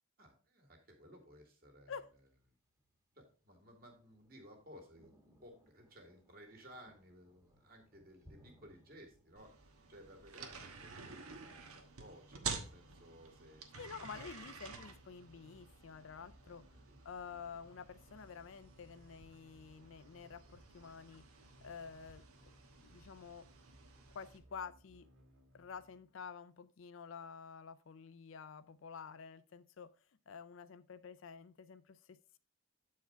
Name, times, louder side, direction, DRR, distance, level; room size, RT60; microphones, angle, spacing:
voice 1, 0.2-1.9 3.2-9.5 9.9-13.7 16.4-17.0, equal, 45° right, 2.0 m, -58 dB
Thunder, 2.0-13.9, equal, 15° right, 1.3 m, -69 dB
sound 1, 9.4-24.4, right 5 dB, 80° right, 1.2 m, -50 dB
voice 2, 13.7-16.7 17.0-21.3 21.6-22.2 22.8-23.5 24.1-25.1 25.5-29.9 30.3-32.4, left 6 dB, 60° left, 0.4 m, -50 dB
sound 2, 14.6-26.5, equal, 60° right, 1.8 m, -64 dB
8.3 x 4.7 x 4.4 m
head